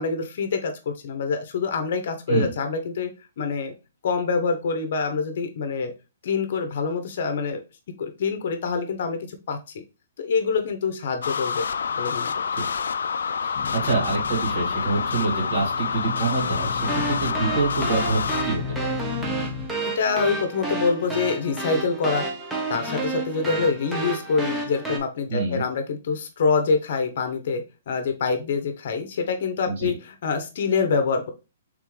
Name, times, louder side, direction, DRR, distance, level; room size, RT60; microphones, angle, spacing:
voice 1, 0.0-3.1 3.4-3.7 4.0-5.9 6.2-7.6 8.0-9.8 10.2-11.7 12.0-12.3 19.9-22.3 22.7-31.3, left 5 dB, 50° left, 7 dB, 0.7 m, -25 dB
sound 1, 11.2-18.4, left 6 dB, 85° left, 0.3 m, -27 dB
voice 2, 13.4-19.0 25.3-25.6 29.6-29.9, right 3 dB, 60° right, -3 dB, 2.5 m, -26 dB
sound 2, 13.5-19.7, left 5 dB, 35° left, 1.1 m, -35 dB
sound 3, 16.8-25.0, right 3 dB, 5° right, 0.6 m, -30 dB
3.6 x 3.5 x 3.1 m, 0.29 s
hypercardioid pair, 170°, 0 cm